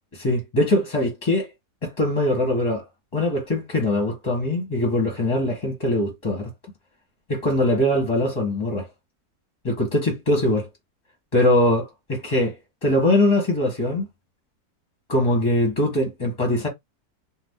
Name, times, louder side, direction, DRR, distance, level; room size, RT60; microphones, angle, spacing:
voice 1, 0.2-1.5 1.8-2.9 3.1-6.5 7.3-8.9 9.6-10.7 11.3-12.5 12.8-14.1 15.1-16.7, left 1 dB, 20° left, 1.0 m, -22 dB
2.7 x 2.5 x 3.4 m
omnidirectional pair, 1.6 m